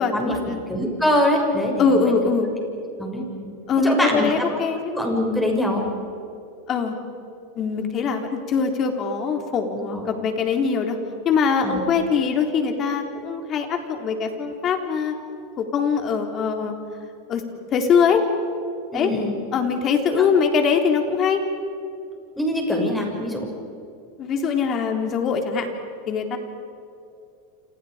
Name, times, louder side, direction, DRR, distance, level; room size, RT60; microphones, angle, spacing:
voice 1, 0.0-0.6 1.8-2.5 3.7-4.8 6.7-7.0 7.6-11.0 11.2-15.2 15.6-16.7 17.3-17.4 17.7-18.2 18.9-19.1 19.5-21.4 24.2-25.7 26.1-26.4, left 5 dB, 35° left, 4 dB, 3.7 m, -22 dB
voice 2, 0.7-2.0 3.0-3.5 3.8-4.6 4.9-5.8 9.9-10.0 11.6-11.8 18.9-19.3 20.1-20.4 22.4-23.5, left 1 dB, 5° left, 0 dB, 6.7 m, -23 dB
29.0 x 28.0 x 5.2 m, 2.6 s
supercardioid pair, 125°, 0 cm